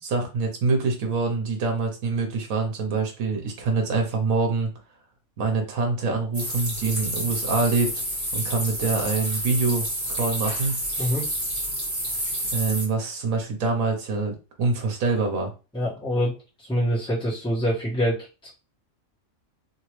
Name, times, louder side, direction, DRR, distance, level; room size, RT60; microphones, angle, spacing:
voice 1, 0.0-4.7 5.4-7.9 8.3-9.8 10.1-11.1 12.5-15.5, right 3 dB, 85° right, 3 dB, 1.3 m, -25 dB
sound 1, 6.3-12.9, right 1 dB, 35° right, 1.8 m, -29 dB
voice 2, 15.7-16.3 16.6-18.5, equal, 5° left, -11 dB, 1.4 m, -25 dB
3.1 x 2.9 x 3.1 m, 0.32 s
omnidirectional pair, 1.4 m